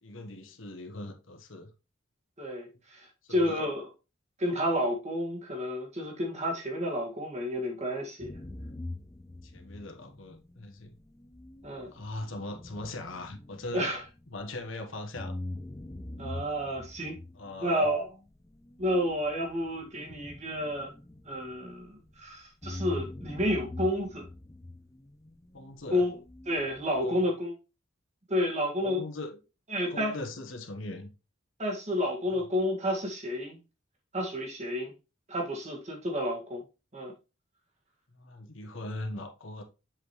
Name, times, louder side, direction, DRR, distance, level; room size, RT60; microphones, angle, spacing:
voice 1, 0.0-1.7 3.2-3.6 9.4-11.0 11.9-13.9 14.3-15.3 17.3-17.9 25.5-26.0 27.0-27.3 28.8-29.4 29.9-31.1 32.3-32.5 38.1-39.6, left 2 dB, 70° left, 1.3 m, -40 dB
voice 2, 2.4-3.9 4.4-8.3 11.6-11.9 13.7-14.0 16.2-17.2 17.6-18.1 18.8-20.9 21.3-24.3 25.9-26.2 26.5-27.5 28.3-29.0 29.7-30.1 31.6-33.6 34.1-34.9 35.3-36.6 36.9-37.1, equal, 35° right, 1.9 m, -30 dB
sound 1, 8.2-14.7 15.2-22.2 22.6-27.0, left 2 dB, 15° left, 0.5 m, -44 dB
7.5 x 5.1 x 3.1 m
head